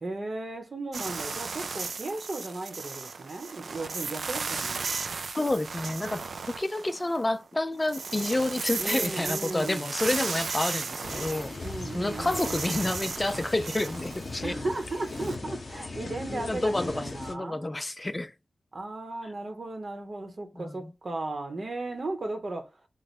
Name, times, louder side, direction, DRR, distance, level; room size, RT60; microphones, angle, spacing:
voice 1, 0.0-4.9 8.8-9.9 11.6-12.6 14.4-17.6 18.7-22.7, right 2 dB, 60° right, 0.9 m, -36 dB
sound 1, 0.9-7.3 7.7-15.4, right 4 dB, 80° right, 0.3 m, -35 dB
voice 2, 5.3-6.2 6.6-11.5 11.9-14.5 16.3-18.3 20.5-20.9, left 2 dB, 30° left, 0.4 m, -29 dB
sound 2, 11.0-17.3, left 3 dB, 65° left, 0.7 m, -39 dB
3.2 x 2.1 x 4.1 m
cardioid pair, 50°, 0 cm